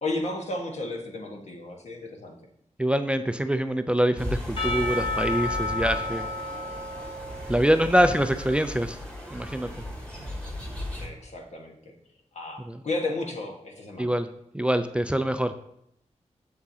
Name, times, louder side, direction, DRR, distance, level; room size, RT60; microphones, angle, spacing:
voice 1, 0.0-2.3 7.9-8.1 11.0-11.9 12.3-14.1, left 2 dB, 65° left, 1 dB, 1.3 m, -33 dB
voice 2, 2.8-6.3 7.5-9.0 9.3-9.7 12.7-12.8 14.0-14.3 14.5-15.5, right 1 dB, 10° right, 9 dB, 0.3 m, -24 dB
sound 1, 4.2-11.1, left 1 dB, 10° left, 1.7 m, -36 dB
Percussion / Church bell, 4.6-8.5, left 2 dB, 50° left, 2.3 m, -32 dB
7.6 x 7.0 x 2.8 m, 0.74 s
wide cardioid pair, 100°, 12 cm